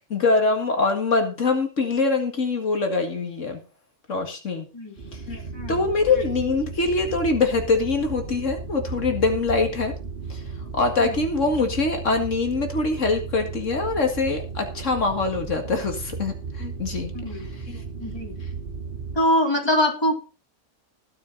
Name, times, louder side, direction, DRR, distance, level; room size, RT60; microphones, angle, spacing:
voice 1, 0.1-3.6 4.1-4.7 5.1-5.4 5.7-9.9 10.3-10.4 10.7-17.8, left 3 dB, 80° left, 5 dB, 2.3 m, -24 dB
sound 1, 5.0-19.2, right 4 dB, 45° right, 2.1 m, -35 dB
voice 2, 5.5-5.9 11.0-11.3 17.1-17.5 18.0-18.4 19.2-20.3, left 1 dB, 20° left, 1 dB, 3.7 m, -24 dB
20.0 x 6.7 x 4.0 m, 0.34 s
omnidirectional pair, 1.3 m